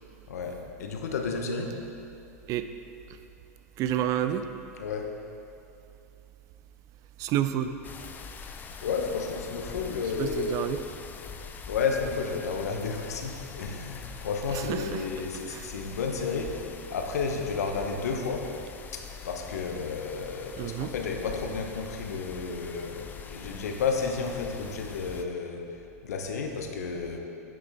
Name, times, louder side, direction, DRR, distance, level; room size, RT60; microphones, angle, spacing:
voice 1, 0.3-1.8 4.8-5.1 8.4-10.6 11.7-16.6 16.9-18.5 18.9-27.2, left 5 dB, 75° left, 3 dB, 0.9 m, -32 dB
voice 2, 3.8-4.5 7.2-7.8 10.2-10.8 14.5-15.1 15.5-15.7 20.6-20.9, right 11 dB, 40° right, 10 dB, 0.4 m, -29 dB
sound 1, 7.8-25.2, left 6 dB, 20° left, 0.4 m, -44 dB
8.7 x 6.4 x 3.6 m, 2.6 s
hypercardioid pair, 105°, 8 cm